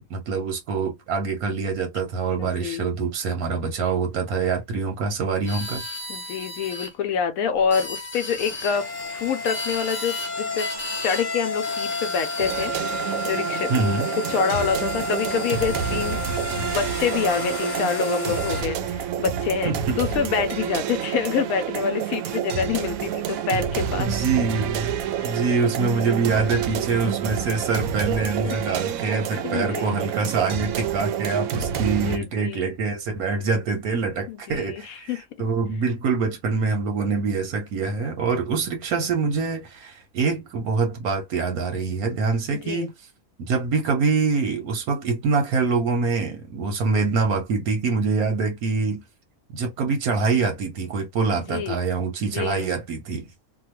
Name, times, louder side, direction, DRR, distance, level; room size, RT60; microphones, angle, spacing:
voice 1, 0.0-5.8 13.7-14.1 19.6-20.0 24.0-24.9 25.2-42.9 43.5-49.0 49.5-53.3, right 4 dB, 90° right, 1.3 m, -25 dB
voice 2, 2.4-2.9 6.1-10.7 11.0-12.7 13.2-13.7 14.3-16.2 16.6-24.1 25.2-25.4 28.4-28.6 29.3-30.0 31.5-32.7 34.3-35.2 42.5-42.9 51.3-51.8 52.2-52.7, left 7 dB, 75° left, 1.0 m, -27 dB
sound 1, 5.4-6.9 7.6-8.8 9.4-10.3 10.6-11.3 11.6-12.7, left 2 dB, 10° left, 0.7 m, -34 dB
sound 2, 8.3-18.6, left 2 dB, 40° left, 0.3 m, -31 dB
sound 3, 12.4-32.2, right 9 dB, 75° right, 0.9 m, -28 dB
2.9 x 2.2 x 2.9 m
omnidirectional pair, 1.5 m